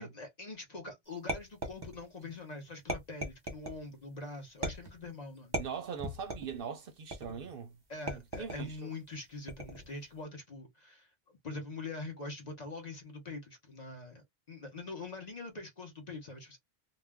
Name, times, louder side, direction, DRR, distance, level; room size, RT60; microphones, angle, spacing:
voice 1, 0.0-5.6 7.9-11.1 11.4-16.6, left 3 dB, 45° left, 0.7 m, -44 dB
sound 1, 1.3-2.2 2.9-3.8 4.6-5.1 5.5-6.6 7.1-7.5 8.1-8.7 9.5-9.9, right 1 dB, 25° right, 0.7 m, -38 dB
voice 2, 5.6-7.8 8.1-8.8, right 6 dB, 60° right, 0.7 m, -41 dB
2.3 x 2.1 x 3.3 m
omnidirectional pair, 1.1 m